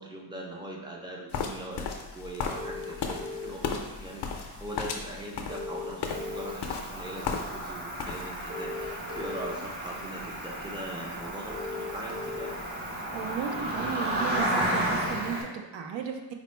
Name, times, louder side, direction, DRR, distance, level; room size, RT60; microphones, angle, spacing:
voice 1, 0.0-12.6, right 1 dB, 10° right, -1 dB, 0.3 m, -41 dB
sound 1, 1.3-7.7 8.0-8.5, left 6 dB, 65° left, 0.5 m, -35 dB
sound 2, 2.4-13.0, left 2 dB, 35° right, 0.7 m, -41 dB
Cricket, 6.1-15.4, right 1 dB, 60° right, 1.2 m, -33 dB
voice 2, 13.1-16.3, right 7 dB, 80° right, 4 dB, 0.6 m, -34 dB
4.1 x 2.0 x 4.3 m, 1.1 s
wide cardioid pair, 160°, 44 cm